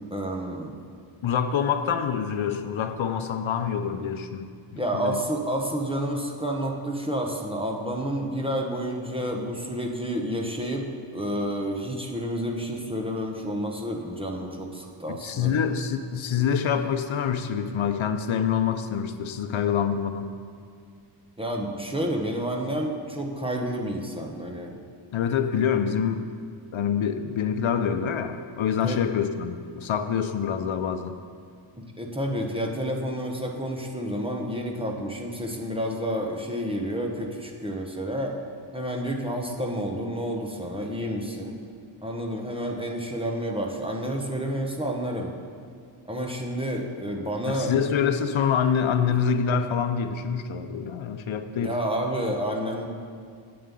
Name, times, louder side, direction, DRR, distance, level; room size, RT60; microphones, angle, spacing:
voice 1, 0.1-0.8 4.8-15.6 21.4-24.8 28.8-29.0 31.8-38.4 38.7-41.6 42.0-45.3 46.1-47.9 49.1-49.2 51.5-52.9, equal, 10° right, 1 dB, 1.0 m, -30 dB
voice 2, 1.2-4.5 4.9-5.2 15.1-20.3 25.1-26.2 26.7-31.2 47.5-51.7, left 7 dB, 70° left, 8 dB, 0.7 m, -26 dB
8.7 x 7.5 x 8.3 m, 2.2 s
wide cardioid pair, 175°, 50 cm